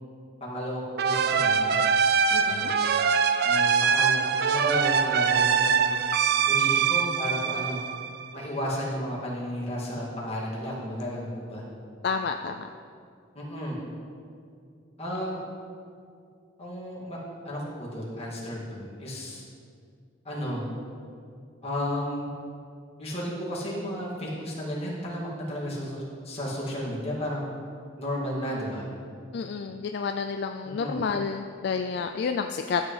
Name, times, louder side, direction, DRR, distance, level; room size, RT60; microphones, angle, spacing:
voice 1, 0.4-1.8 2.4-2.7 3.4-6.0 6.5-7.8 8.3-11.6 13.3-13.8 15.0-15.4 16.6-17.2 17.4-19.4 20.2-20.6 21.6-22.3 23.0-27.5 28.0-28.9 30.6-31.0, equal, 30° left, -6 dB, 2.2 m, -33 dB
sound 1, 1.0-8.4, right 6 dB, 50° right, 0.4 m, -23 dB
voice 2, 2.3-2.7 12.0-12.7 29.3-32.8, left 5 dB, 55° left, 6 dB, 0.3 m, -30 dB
12.5 x 8.1 x 3.3 m, 2.4 s
head